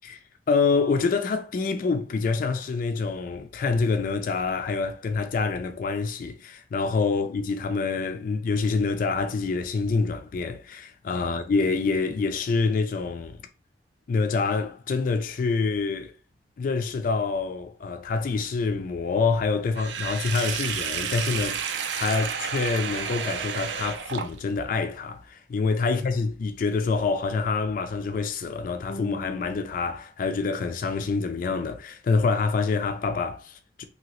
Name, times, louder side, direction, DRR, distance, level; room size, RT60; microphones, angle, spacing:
voice 1, 0.5-13.4 14.1-16.1 16.6-33.8, left 4 dB, 50° left, 0.3 m, -26 dB
Sink (filling or washing), 19.7-24.7, right 7 dB, 75° right, 0.4 m, -31 dB
2.8 x 2.7 x 2.9 m
head